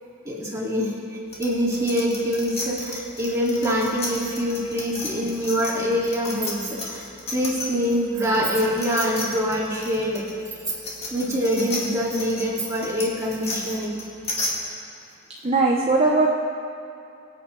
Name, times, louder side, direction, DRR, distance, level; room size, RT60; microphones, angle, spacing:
voice 1, 0.2-0.9 1.4-10.2 11.1-14.0, equal, 15° right, -5 dB, 2.2 m, -25 dB
sound 1, 1.3-7.9 8.2-14.5, left 2 dB, 30° left, 1.9 m, -33 dB
voice 2, 15.4-16.3, right 3 dB, 30° right, 0 dB, 0.7 m, -19 dB
24.0 x 8.4 x 3.2 m, 2.6 s
head